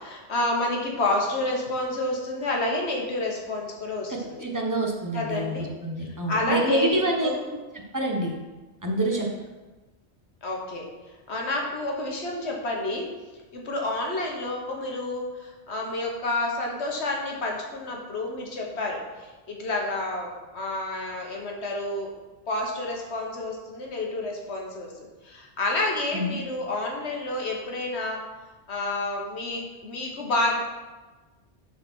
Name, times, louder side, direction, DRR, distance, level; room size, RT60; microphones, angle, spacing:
voice 1, 0.0-4.4 5.1-5.7 6.0-7.4 9.1-9.3 10.4-10.9 11.3-13.1 13.5-22.1 22.5-24.9 25.2-28.2 28.7-30.6, left 2 dB, 70° left, 0 dB, 1.6 m, -29 dB
voice 2, 4.1-7.3 7.9-8.4 8.8-9.3 26.1-26.4, right 1 dB, 15° right, 0 dB, 1.0 m, -26 dB
7.3 x 4.2 x 6.2 m, 1.2 s
omnidirectional pair, 1.2 m